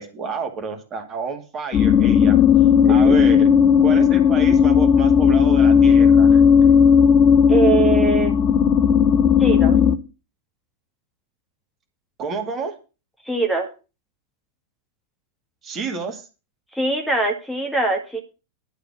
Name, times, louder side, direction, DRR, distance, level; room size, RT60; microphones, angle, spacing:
voice 1, 0.0-2.4 2.9-3.5 3.8-6.3 12.2-12.7 15.6-16.3, right 4 dB, 30° right, 4 dB, 2.4 m, -29 dB
sound 1, 1.7-10.0, left 7 dB, 30° left, 0.9 m, -14 dB
voice 2, 2.8-3.1 7.5-8.3 9.4-9.8 13.3-13.7 16.7-18.2, right 3 dB, ahead, 2 dB, 2.1 m, -22 dB
11.5 x 5.0 x 8.1 m, 0.31 s
figure-of-eight pair, 90°, 0 cm